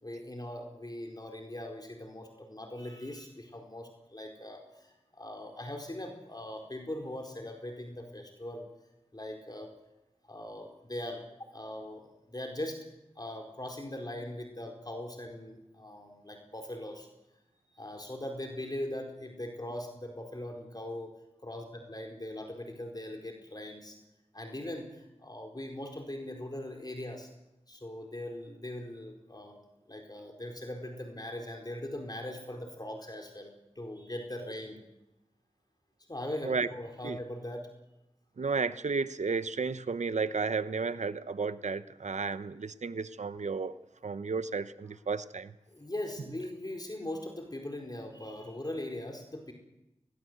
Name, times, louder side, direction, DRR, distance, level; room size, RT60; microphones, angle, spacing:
voice 1, 0.0-8.7 9.1-9.7 10.3-11.3 11.5-12.8 13.2-17.1 17.7-21.1 21.4-24.0 24.3-27.3 27.7-29.6 29.9-34.8 36.1-37.7 45.7-49.5, left 1 dB, 35° left, 2 dB, 4.3 m, -40 dB
voice 2, 38.4-43.7 44.0-45.5, right 4 dB, 80° right, 14 dB, 0.9 m, -33 dB
21.0 x 20.0 x 8.0 m, 0.93 s
wide cardioid pair, 45°, 12 cm